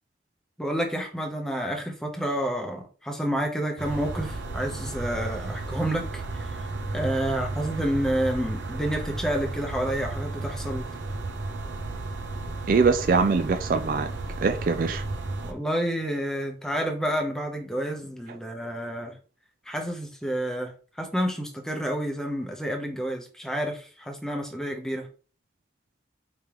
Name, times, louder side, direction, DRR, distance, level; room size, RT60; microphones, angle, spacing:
voice 1, 0.6-6.7 6.9-10.9 15.4-19.2 19.6-25.1, equal, 5° left, 0.8 m, -29 dB
sound 1, 3.8-15.5, right 2 dB, 80° right, 0.7 m, -33 dB
voice 2, 12.7-14.1 14.4-15.0, right 4 dB, 50° right, 0.3 m, -22 dB
4.9 x 3.4 x 3.0 m
head